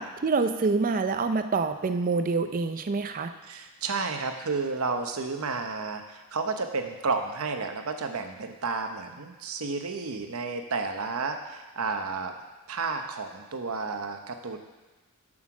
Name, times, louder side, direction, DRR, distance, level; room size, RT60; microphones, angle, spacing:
voice 1, 0.0-3.3, right 4 dB, 40° right, 9 dB, 0.5 m, -26 dB
voice 2, 3.4-12.3 12.7-14.6, right 4 dB, 70° right, 5 dB, 0.9 m, -31 dB
7.5 x 6.4 x 6.0 m, 1.2 s
head